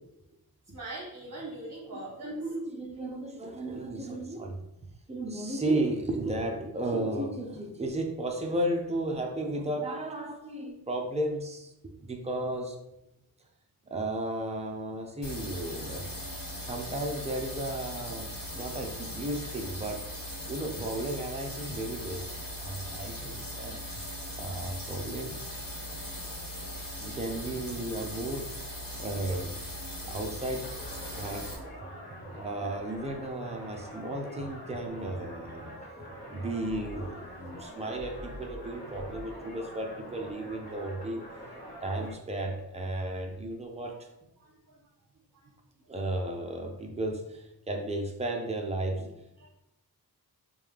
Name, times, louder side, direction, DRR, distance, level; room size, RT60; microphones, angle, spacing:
voice 1, 0.7-2.4 26.8-26.9 28.9-29.0 36.0-36.1 38.9-39.0 43.7-43.8 44.4-44.8 45.3-45.5 49.4-49.5, right 2 dB, 55° right, -6 dB, 1.1 m, -43 dB
voice 2, 1.9-4.6 5.1-11.7 12.0-12.8 13.9-16.1 16.6-18.3 18.5-20.0 20.5-23.8 24.4-25.4 27.0-28.6 29.0-29.5 30.0-30.7 31.1-31.5 31.8-35.7 36.3-41.2 41.8-44.0 45.9-49.3, right 1 dB, 15° right, 2 dB, 0.6 m, -34 dB
sound 1, 15.2-31.5, equal, 60° left, 1.2 m, -39 dB
sound 2, 30.6-42.1, equal, 90° left, 1.1 m, -44 dB
5.2 x 2.3 x 3.3 m, 0.86 s
wide cardioid pair, 105°, 38 cm